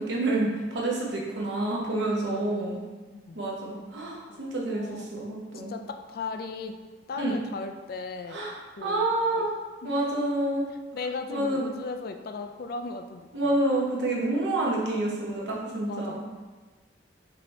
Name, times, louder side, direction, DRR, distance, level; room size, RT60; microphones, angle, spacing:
voice 1, 0.0-2.8 3.3-5.7 7.2-7.3 8.3-8.5 8.8-9.5 9.8-10.7 11.3-11.6 13.3-16.2, right 2 dB, 70° right, -3 dB, 0.9 m, -28 dB
voice 2, 4.7-5.1 5.7-6.8 7.1-8.4 8.8-9.5 9.8-10.3 10.9-13.5 15.9-16.2, left 4 dB, 55° left, 6 dB, 0.3 m, -37 dB
5.2 x 2.7 x 3.2 m, 1.3 s
head